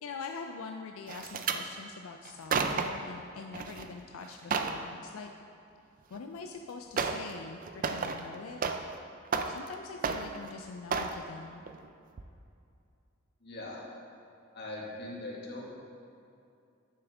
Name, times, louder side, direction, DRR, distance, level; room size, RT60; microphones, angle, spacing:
voice 1, 0.0-5.3 6.1-8.6 9.5-11.6, left 4 dB, 85° left, 4 dB, 0.4 m, -44 dB
sound 1, 1.1-1.6 2.3-3.1 3.5-3.9 4.2-4.8 6.2-6.3 7.0-7.3 7.6-9.0 9.3-9.7 10.0-10.5 10.9-11.2 11.7-11.9 12.2-12.3, right 5 dB, 40° right, 0.4 m, -32 dB
voice 2, 13.4-13.8 14.5-15.7, left 2 dB, 55° left, -3 dB, 1.6 m, -41 dB
9.7 x 7.0 x 3.5 m, 2.5 s
head